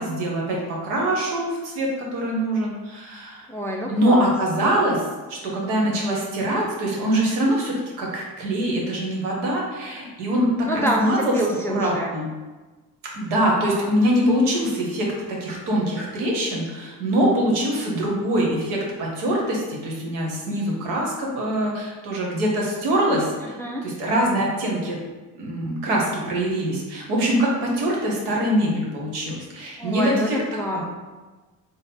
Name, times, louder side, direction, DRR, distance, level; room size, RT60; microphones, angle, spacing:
voice 1, 0.0-3.5 3.9-11.3 11.7-12.3 13.1-23.5 23.8-25.0 25.4-30.4 30.7-30.8, right 1 dB, 75° right, -2 dB, 1.1 m, -23 dB
voice 2, 3.5-4.3 10.6-12.1 13.6-13.9 23.4-23.8 29.8-30.8, equal, 5° left, -1 dB, 0.4 m, -27 dB
3.8 x 2.0 x 4.2 m, 1.2 s
hypercardioid pair, 55°, 48 cm